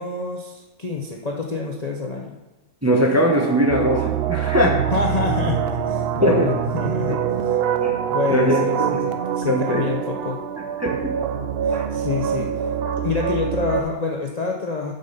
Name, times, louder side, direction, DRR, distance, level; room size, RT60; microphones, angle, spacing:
voice 1, 0.0-2.4 4.9-7.6 8.1-10.4 11.6-12.7 13.0-14.9, left 4 dB, 40° left, 0 dB, 0.6 m, -27 dB
voice 2, 2.8-4.9 6.2-6.5 7.1-7.2 7.8-8.0 8.3-8.6 8.9-9.0 9.5-9.8 10.8-11.2 11.7-11.8, equal, 15° right, 0 dB, 0.7 m, -20 dB
Brass instrument, 3.2-9.0, right 10 dB, 90° right, 1.2 m, -35 dB
sound 1, 3.7-13.8, right 8 dB, 65° right, 0.6 m, -25 dB
7.8 x 5.3 x 5.3 m, 1.1 s
omnidirectional pair, 1.6 m